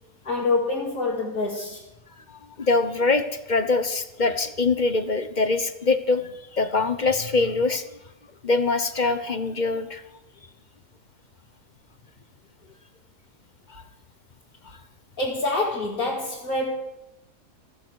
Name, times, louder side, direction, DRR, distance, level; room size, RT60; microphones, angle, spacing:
voice 1, 0.2-1.9 15.2-16.7, left 2 dB, 60° left, 2.9 m, -26 dB
voice 2, 2.3-7.8 8.4-10.0 13.7-13.8, left 3 dB, 35° left, 1.0 m, -24 dB
15.0 x 14.5 x 6.3 m
omnidirectional pair, 1.7 m